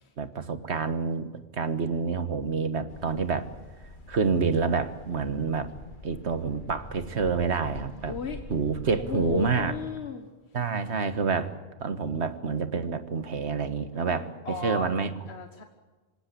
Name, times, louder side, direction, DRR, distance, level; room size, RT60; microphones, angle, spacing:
voice 1, 0.2-3.5 4.1-5.7 6.0-8.2 8.5-9.7 10.5-11.5 11.8-15.1, right 5 dB, 90° right, 10 dB, 1.7 m, -28 dB
sound 1, 2.9-9.9, left 3 dB, 50° left, 1.7 m, -45 dB
voice 2, 8.1-8.4 9.0-10.3 13.9-14.9 15.3-15.6, left 5 dB, 75° left, 5 dB, 1.7 m, -35 dB
26.5 x 17.0 x 8.4 m, 1.3 s
omnidirectional pair, 1.1 m